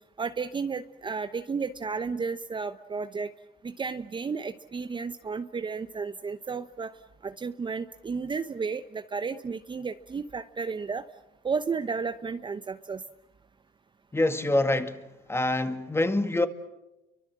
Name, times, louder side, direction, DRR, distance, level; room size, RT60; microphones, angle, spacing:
voice 1, 0.2-3.3 3.6-7.0 7.2-11.0 11.4-13.0, right 5 dB, 25° right, 0.9 m, -33 dB
voice 2, 14.1-15.0 15.3-16.5, left 2 dB, 10° left, 2.0 m, -25 dB
29.0 x 24.0 x 7.5 m
supercardioid pair, 100°, 20 cm